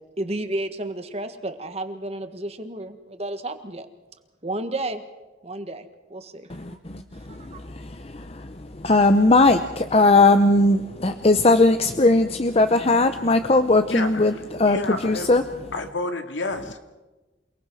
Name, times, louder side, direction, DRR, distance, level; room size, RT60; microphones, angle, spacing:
voice 1, 0.2-3.9 4.4-5.0 5.4-6.8 7.3-7.6, right 1 dB, 35° right, 8 dB, 1.7 m, -32 dB
voice 2, 6.5-14.8 15.0-15.4, left 2 dB, 35° left, 8 dB, 0.8 m, -19 dB
voice 3, 13.8-15.3 15.7-16.8, left 2 dB, 85° left, 6 dB, 2.3 m, -30 dB
28.5 x 19.0 x 6.3 m, 1.1 s
head